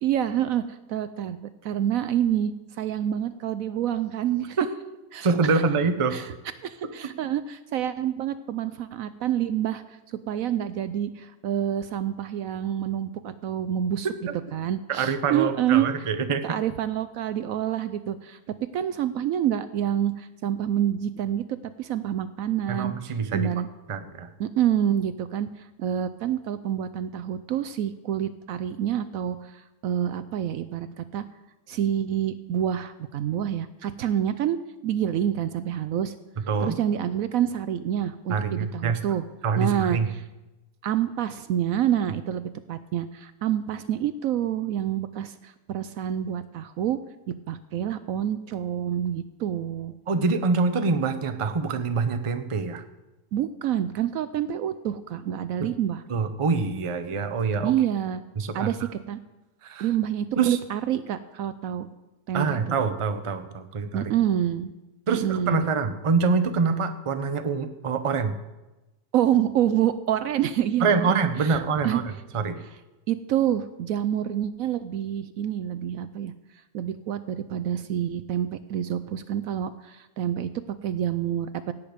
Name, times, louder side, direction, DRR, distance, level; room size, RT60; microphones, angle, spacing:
voice 1, 0.0-4.6 5.1-5.6 6.1-6.3 6.6-14.1 14.5-16.1 16.4-18.4 18.7-23.7 24.4-31.2 31.7-34.6 34.8-36.1 36.6-39.2 39.6-40.2 40.8-47.0 47.3-49.9 53.3-56.0 57.6-58.2 58.5-59.2 59.8-61.9 62.3-62.8 63.9-64.7 65.1-65.7 69.1-71.6 71.8-72.0 73.1-76.3 76.7-81.7, right 10 dB, 70° right, 13 dB, 0.9 m, -27 dB
voice 2, 5.2-6.2 14.9-16.4 22.7-23.5 23.9-24.3 36.5-36.7 38.3-39.0 39.4-40.1 50.1-52.8 55.6-55.7 56.1-57.7 58.4-58.7 59.6-59.9 60.4-60.6 62.3-64.0 65.1-68.3 70.8-72.0 72.3-72.6, right 4 dB, 30° right, 8 dB, 0.6 m, -25 dB
17.0 x 8.7 x 5.1 m, 1.0 s
omnidirectional pair, 1.7 m